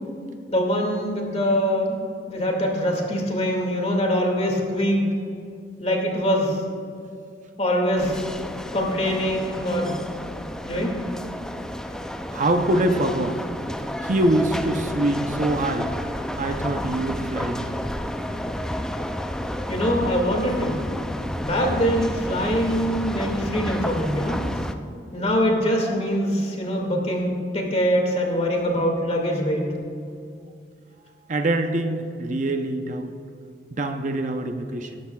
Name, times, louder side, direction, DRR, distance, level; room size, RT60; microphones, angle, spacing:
voice 1, 0.5-2.0 2.3-5.1 5.8-6.6 7.6-8.3 8.7-9.9 10.6-10.9 19.7-20.8 21.4-24.4 25.1-29.7, equal, 35° left, 0 dB, 2.1 m, -23 dB
sound 1, 8.0-24.7, equal, 5° left, 0.4 m, -31 dB
voice 2, 12.3-13.4 14.0-15.9 16.4-17.9 31.3-33.1 33.7-35.0, right 1 dB, 45° right, 5 dB, 0.7 m, -24 dB
18.5 x 13.0 x 2.4 m, 2.4 s
head